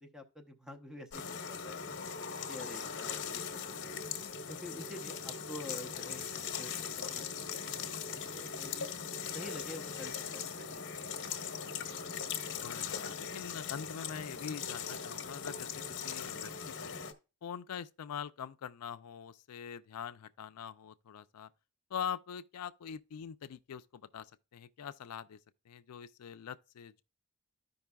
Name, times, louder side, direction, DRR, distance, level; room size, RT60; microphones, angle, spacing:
voice 1, 0.0-2.0 2.5-3.9 4.5-7.3 7.8-8.9 9.3-11.1, left 1 dB, 5° right, 0.8 m, -48 dB
sound 1, 1.1-17.1, left 6 dB, 60° left, 1.0 m, -40 dB
voice 2, 12.4-17.0 17.4-21.5 21.9-25.4 25.7-27.0, left 8 dB, 85° left, 0.4 m, -43 dB
13.5 x 5.3 x 2.3 m
head